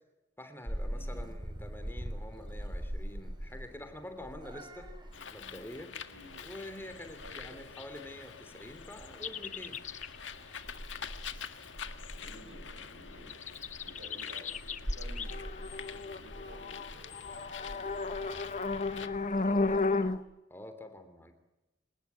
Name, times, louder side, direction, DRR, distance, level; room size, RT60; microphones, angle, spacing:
voice 1, 0.4-4.9 5.3-5.9 6.4-9.8 19.4-19.9 20.5-21.3, left 1 dB, 10° left, 8 dB, 3.1 m, -47 dB
Purr / Meow, 0.7-20.2, equal, 25° right, 3.6 m, -44 dB
voice 2, 0.9-1.3 6.1-6.5 7.2-7.7 12.1-13.4 13.8-18.0 18.9-20.0, equal, 80° right, 6 dB, 7.5 m, -54 dB
Bird, 5.1-19.1, left 7 dB, 85° left, 1.8 m, -47 dB
sound 1, 9.2-10.2 13.3-20.2, left 3 dB, 40° left, 1.0 m, -34 dB
26.5 x 19.0 x 9.5 m, 1.0 s
head